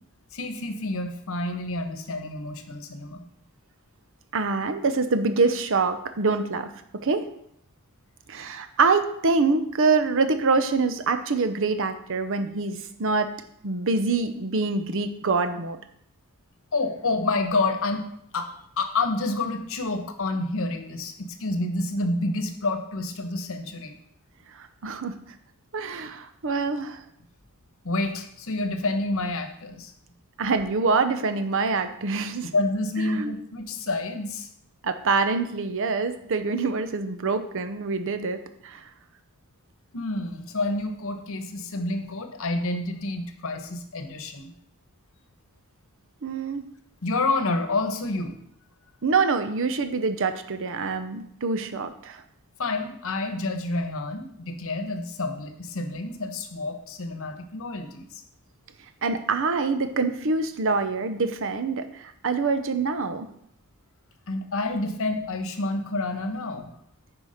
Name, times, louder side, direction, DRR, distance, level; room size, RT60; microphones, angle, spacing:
voice 1, 0.3-3.2 16.7-18.0 18.3-23.9 27.8-29.9 32.5-34.5 39.9-44.5 47.0-48.4 52.6-58.2 64.3-66.7, left 2 dB, 65° left, 7 dB, 1.0 m, -28 dB
voice 2, 4.3-7.3 8.3-13.3 13.6-15.8 24.5-25.1 25.7-27.0 30.4-32.5 33.1-33.4 34.8-38.8 46.2-46.7 49.0-52.2 59.0-63.3, right 4 dB, 60° right, 9 dB, 0.8 m, -25 dB
9.8 x 4.7 x 5.0 m, 0.72 s
head